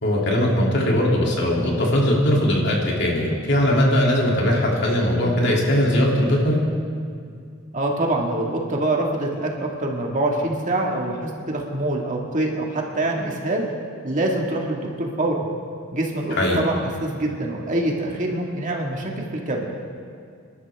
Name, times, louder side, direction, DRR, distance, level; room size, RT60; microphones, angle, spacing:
voice 1, 0.0-6.6 16.3-16.6, equal, 60° left, -2 dB, 2.9 m, -20 dB
voice 2, 7.7-13.7 14.0-15.5 15.9-19.7, right 1 dB, 40° right, 0 dB, 1.9 m, -25 dB
27.0 x 12.5 x 3.6 m, 2.3 s
head